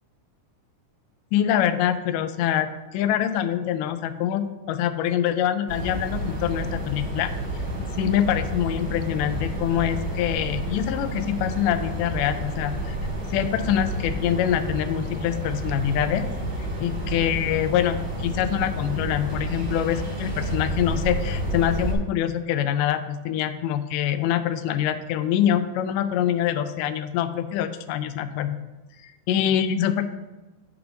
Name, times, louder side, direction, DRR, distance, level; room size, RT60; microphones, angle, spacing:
voice 1, 1.3-7.3 8.0-13.0 13.3-16.3 16.8-28.6 29.3-30.0, left 10 dB, 85° left, 11 dB, 2.1 m, -25 dB
sound 1, 5.7-21.9, right 1 dB, 25° right, 2.0 m, -30 dB
8.6 x 3.6 x 6.0 m, 1.1 s
omnidirectional pair, 3.8 m